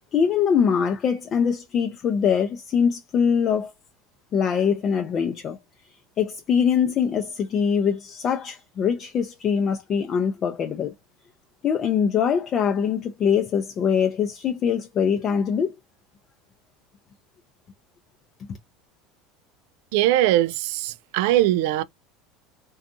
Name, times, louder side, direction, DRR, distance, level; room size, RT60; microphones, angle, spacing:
voice 1, 0.1-3.7 4.3-5.6 6.2-10.9 11.6-15.7, left 7 dB, 40° left, 0.5 m, -23 dB
voice 2, 19.9-21.8, right 14 dB, 75° right, 0.3 m, -21 dB
2.6 x 2.3 x 2.5 m
supercardioid pair, 115°, 0 cm